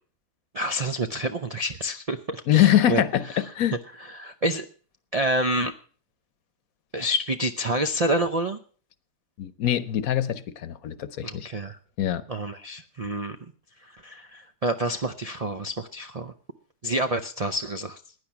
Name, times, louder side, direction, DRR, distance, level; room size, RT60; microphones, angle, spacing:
voice 1, 0.5-3.0 3.3-3.4 4.1-4.7 5.1-5.7 6.9-8.6 11.2-11.8 12.3-13.4 13.8-16.3 16.8-18.0, right 1 dB, 80° right, 0.3 m, -28 dB
voice 2, 2.5-3.2 3.5-3.8 9.4-11.3 12.0-12.2, left 12 dB, 65° left, 1.2 m, -22 dB
16.0 x 10.0 x 5.9 m
omnidirectional pair, 1.7 m